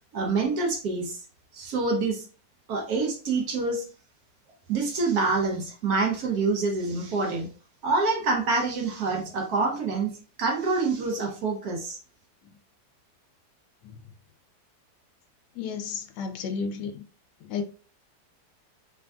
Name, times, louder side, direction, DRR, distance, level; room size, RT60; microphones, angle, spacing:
voice 1, 0.1-1.2 1.5-2.3 2.7-3.9 4.7-7.5 7.8-12.0, right 3 dB, 65° right, 1.1 m, -26 dB
voice 2, 15.5-17.1 17.4-17.6, left 6 dB, 80° left, 1.1 m, -33 dB
3.2 x 2.5 x 2.2 m
omnidirectional pair, 1.8 m